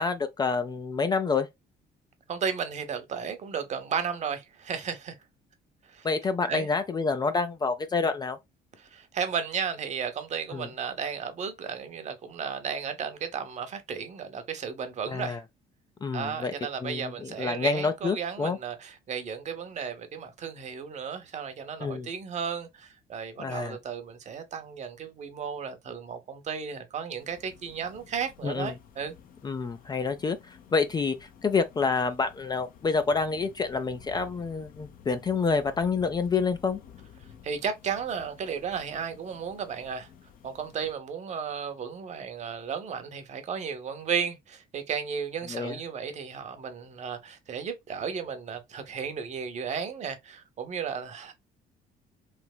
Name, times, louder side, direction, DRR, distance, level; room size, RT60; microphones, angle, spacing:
voice 1, 0.0-1.5 6.0-8.4 10.5-10.7 15.1-15.4 16.0-16.5 16.8-18.6 21.8-22.1 23.4-23.8 28.4-28.7 29.4-36.8 45.5-45.8, left 4 dB, 25° left, 0.4 m, -28 dB
voice 2, 2.3-5.1 5.8-6.1 6.5-6.7 8.8-15.4 16.1-29.2 37.4-40.1 40.4-51.3, right 6 dB, 45° right, 0.8 m, -34 dB
sound 1, 27.2-40.9, left 8 dB, 55° left, 0.7 m, -53 dB
3.3 x 2.8 x 2.2 m
cardioid pair, 110°, 17 cm